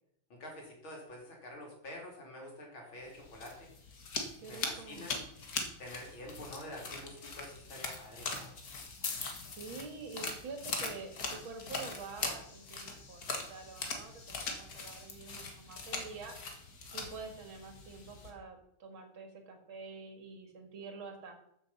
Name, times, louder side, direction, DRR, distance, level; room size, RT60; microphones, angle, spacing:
voice 1, 0.3-3.7 4.5-5.1 5.8-8.5, left 1 dB, 75° left, -1 dB, 4.2 m, -47 dB
sound 1, 3.1-18.3, left 3 dB, 50° left, 2.1 m, -41 dB
voice 2, 4.4-5.1 9.5-16.4 16.9-21.4, right 4 dB, 75° right, 5 dB, 2.8 m, -47 dB
14.0 x 7.2 x 5.6 m, 0.74 s
omnidirectional pair, 2.2 m